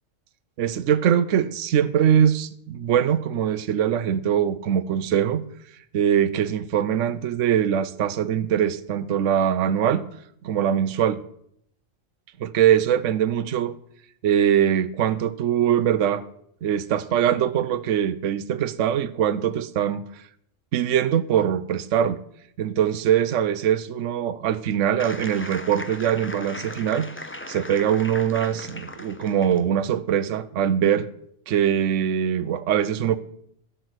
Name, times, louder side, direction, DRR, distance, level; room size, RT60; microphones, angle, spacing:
voice 1, 0.6-5.4 5.9-10.0 10.4-11.2 12.4-13.8 14.2-16.2 16.6-20.0 20.7-22.2 22.6-27.1 27.5-31.1 31.5-33.2, right 9 dB, 70° right, 11 dB, 1.0 m, -22 dB
sound 1, 25.0-29.7, left 1 dB, 10° left, 0.7 m, -38 dB
16.0 x 6.7 x 8.0 m, 0.70 s
omnidirectional pair, 1.4 m